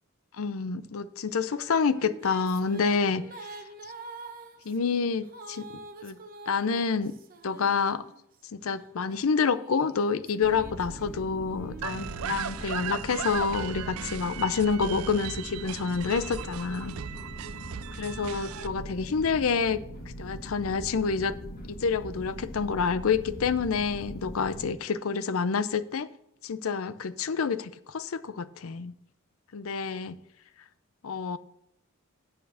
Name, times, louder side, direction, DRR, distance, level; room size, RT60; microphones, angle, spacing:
voice 1, 0.3-3.6 4.6-5.7 6.0-6.2 6.5-7.2 7.4-8.1 8.5-17.0 17.9-19.8 20.2-21.4 21.7-26.1 26.4-28.9 29.5-30.2 31.0-31.4, left 5 dB, 75° left, 14 dB, 0.5 m, -28 dB
Female singing, 1.4-8.4 9.0-12.8, right 3 dB, 40° right, 0.9 m, -47 dB
sound 1, 10.4-24.7, equal, 45° left, 1.7 m, -41 dB
sound 2, 11.8-18.7, right 9 dB, 80° right, 0.4 m, -37 dB
9.3 x 4.4 x 7.1 m, 0.77 s
head